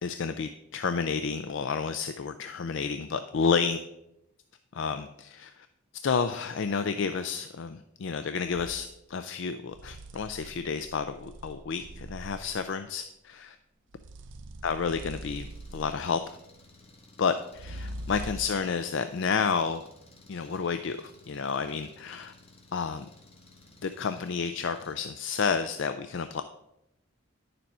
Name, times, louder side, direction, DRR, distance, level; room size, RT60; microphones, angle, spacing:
voice 1, 0.0-3.8 4.7-5.7 6.0-13.6 14.6-16.2 17.2-19.9 20.3-22.3 22.7-23.1 23.8-26.4, left 5 dB, 60° left, 9 dB, 0.4 m, -30 dB
sound 1, 8.5-8.8 9.7-12.7 13.9-16.2 17.5-18.6, right 1 dB, 60° right, 0.6 m, -43 dB
Engine, 14.9-24.9, left 2 dB, 30° left, 1.3 m, -56 dB
10.5 x 6.8 x 4.3 m, 0.83 s
head